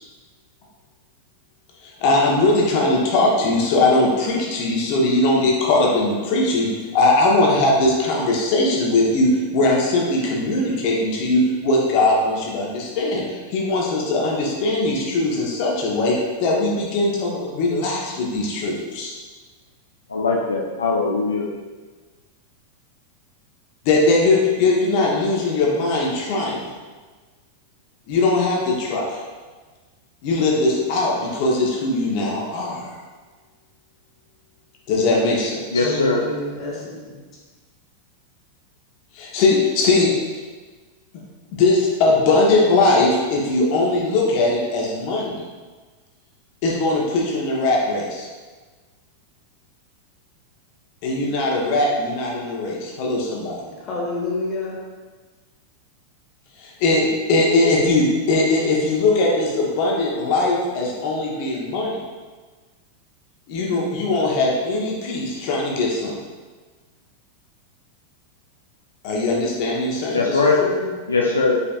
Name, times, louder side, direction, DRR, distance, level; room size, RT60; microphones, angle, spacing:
voice 1, 1.8-19.1 23.8-26.7 28.1-29.2 30.2-33.0 34.9-35.9 39.1-40.1 41.5-45.4 46.6-48.3 51.0-53.6 56.6-62.0 63.5-66.2 69.0-70.4, left 2 dB, 45° left, -3 dB, 1.0 m, -20 dB
voice 2, 20.1-21.5 35.7-36.2 70.1-70.6 71.1-71.6, left 3 dB, 75° left, -3 dB, 0.5 m, -20 dB
voice 3, 35.7-37.1 53.6-54.8 70.0-70.9, left 2 dB, 30° left, -4 dB, 1.3 m, -29 dB
5.2 x 4.0 x 2.4 m, 1.4 s
figure-of-eight pair, 90°, 0 cm